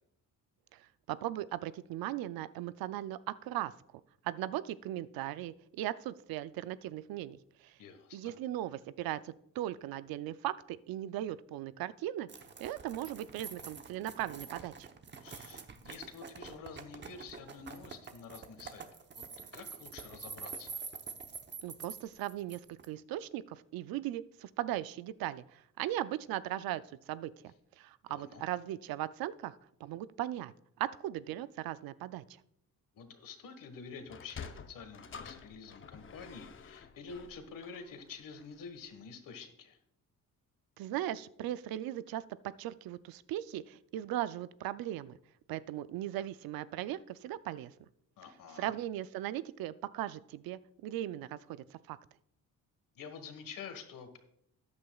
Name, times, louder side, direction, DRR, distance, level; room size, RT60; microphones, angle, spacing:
voice 1, 0.7-3.7 4.2-7.7 8.1-12.3 12.6-14.9 21.6-32.2 40.8-42.2 42.6-45.2 45.5-47.7 48.5-51.4 51.7-52.0, right 13 dB, 85° right, 16 dB, 0.5 m, -38 dB
voice 2, 7.8-8.3 15.2-19.2 19.5-20.8 28.1-28.4 32.9-39.8 48.2-48.7 52.9-54.2, left 5 dB, 70° left, 8 dB, 1.5 m, -48 dB
sound 1, 12.3-22.9, right 5 dB, 30° right, 0.9 m, -46 dB
Sliding door, 34.0-38.6, left 6 dB, 35° left, 0.7 m, -49 dB
13.5 x 9.6 x 2.3 m, 0.74 s
cardioid pair, 110°, 34 cm